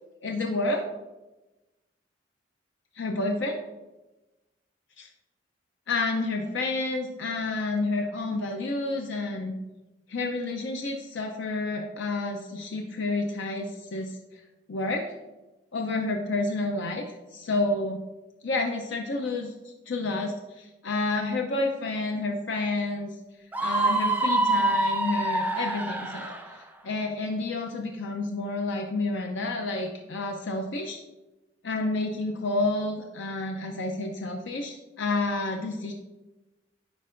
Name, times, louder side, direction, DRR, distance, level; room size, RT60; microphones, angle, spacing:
voice 1, 0.2-0.9 3.0-3.5 5.9-9.6 10.1-14.2 14.7-15.2 15.7-18.0 18.4-23.2 23.6-31.0 31.6-35.9, left 2 dB, 75° left, 2 dB, 0.5 m, -30 dB
Screaming, 23.5-26.5, right 2 dB, 10° right, 0.4 m, -25 dB
9.8 x 4.6 x 2.5 m, 1.1 s
head